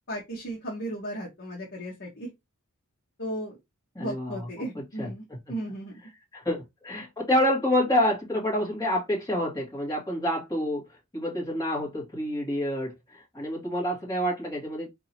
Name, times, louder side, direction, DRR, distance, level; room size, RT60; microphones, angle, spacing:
voice 1, 0.1-2.3 3.2-3.6 4.0-5.9, right 1 dB, 55° left, 1.2 m, -35 dB
voice 2, 4.0-5.1 6.3-10.8 11.1-14.9, left 1 dB, 15° left, 1.9 m, -28 dB
3.8 x 2.8 x 2.8 m
head